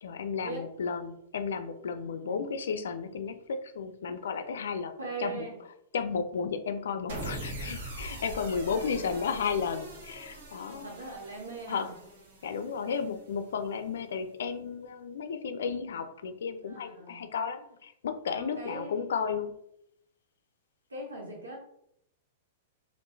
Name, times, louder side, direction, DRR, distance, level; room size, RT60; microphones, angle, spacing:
voice 1, 0.0-4.9 5.2-5.5 5.9-10.9 11.7-11.9 12.4-19.5, left 6 dB, 70° left, 9 dB, 0.4 m, -33 dB
voice 2, 2.0-2.4 5.0-5.6 8.6-9.3 10.6-12.0 16.6-17.3 18.3-18.9 20.9-21.6, right 3 dB, 90° right, 0 dB, 1.0 m, -41 dB
sound 1, 7.1-13.4, right 1 dB, 65° right, 1.0 m, -42 dB
3.6 x 2.5 x 2.6 m, 0.76 s
hypercardioid pair, 105°, 0 cm